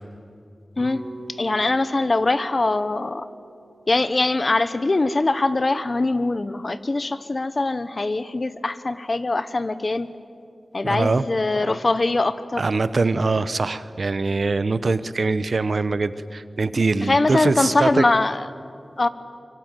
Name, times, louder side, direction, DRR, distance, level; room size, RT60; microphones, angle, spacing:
sound 1, 0.8-5.0, right 2 dB, 5° right, 6.3 m, -44 dB
voice 1, 1.4-3.3 3.9-10.1 10.7-12.6 17.0-18.5 19.0-19.1, left 2 dB, 45° left, 13 dB, 1.1 m, -22 dB
voice 2, 10.8-11.2 12.6-18.1, right 3 dB, 65° right, 14 dB, 0.9 m, -23 dB
24.5 x 24.0 x 9.2 m, 2.5 s
wide cardioid pair, 80°, 0 cm